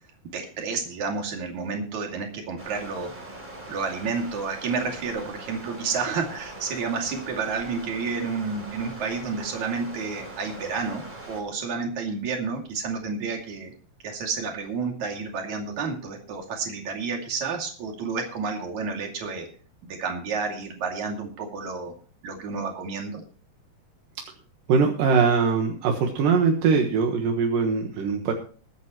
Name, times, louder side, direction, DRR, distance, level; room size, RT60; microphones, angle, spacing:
voice 1, 0.3-3.1 3.7-13.7 14.0-19.5 19.8-21.9 22.2-23.2, right 4 dB, 60° right, 2 dB, 3.8 m, -30 dB
Stream, 2.6-11.4, right 1 dB, 15° right, 3.3 m, -41 dB
voice 2, 24.7-28.3, right 5 dB, 80° right, 3 dB, 3.1 m, -22 dB
21.5 x 9.4 x 3.1 m, 0.40 s
omnidirectional pair, 3.9 m